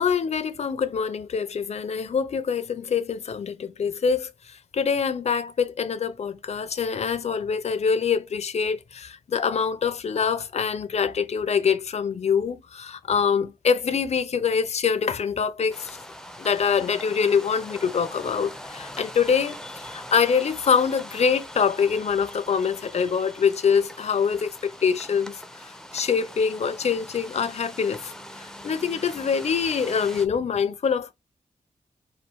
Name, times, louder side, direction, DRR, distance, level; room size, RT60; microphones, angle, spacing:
voice 1, 0.0-16.0 16.4-25.4 25.9-28.1 28.6-31.1, left 6 dB, 50° left, 0.5 m, -25 dB
sound 1, 15.7-30.3, left 1 dB, 5° left, 0.5 m, -42 dB
4.2 x 2.5 x 4.5 m
wide cardioid pair, 165°, 15 cm